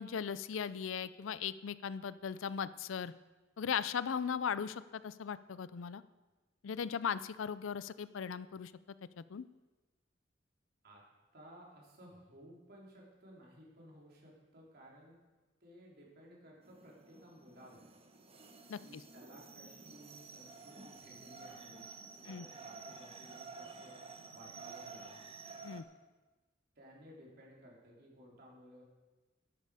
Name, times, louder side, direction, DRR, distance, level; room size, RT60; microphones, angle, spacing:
voice 1, 0.0-3.1 3.6-6.0 6.6-8.7 9.2-9.4 18.7-19.0 22.3-22.5 25.6-25.8, left 7 dB, 90° left, 16 dB, 0.4 m, -38 dB
voice 2, 11.3-15.2 15.6-17.9 18.8-21.9 22.2-24.0 24.3-25.3 26.7-28.8, equal, 55° right, -3 dB, 3.4 m, -57 dB
sound 1, 16.6-25.8, right 4 dB, 30° right, 1.1 m, -52 dB
12.0 x 11.0 x 4.9 m, 1.2 s
head